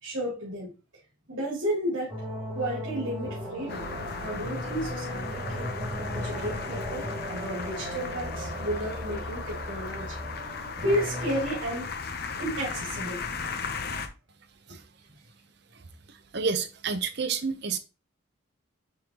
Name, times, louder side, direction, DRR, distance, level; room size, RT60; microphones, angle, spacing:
voice 1, 0.0-0.7 1.3-2.1 2.5-3.8 4.2-5.7 6.1-10.2 10.8-11.9 12.3-13.2, equal, 80° right, 2.7 m, -32 dB
sound 1, 2.1-11.4, equal, 15° right, 2.7 m, -36 dB
sound 2, 3.7-14.1, left 4 dB, 50° left, 0.7 m, -36 dB
voice 2, 16.1-17.8, right 5 dB, 55° right, 0.8 m, -30 dB
9.0 x 3.8 x 2.9 m
head